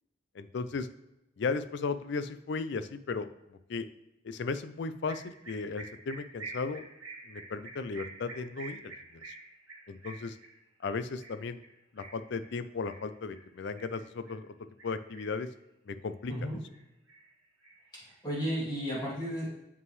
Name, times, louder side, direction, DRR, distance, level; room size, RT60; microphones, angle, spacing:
voice 1, 0.3-0.9 1.4-3.9 4.2-6.8 7.3-9.2 9.9-10.4 10.8-11.6 11.9-14.5 14.8-15.5 15.9-16.3, left 4 dB, 55° left, 12 dB, 0.4 m, -36 dB
sound 1, 5.1-14.4 14.8-15.5 15.9-16.8 17.1-18.4, right 3 dB, 85° right, 1.9 m, -48 dB
voice 2, 16.3-16.6 17.9-19.5, equal, 20° left, -6 dB, 2.7 m, -34 dB
7.4 x 5.5 x 3.2 m, 0.93 s
head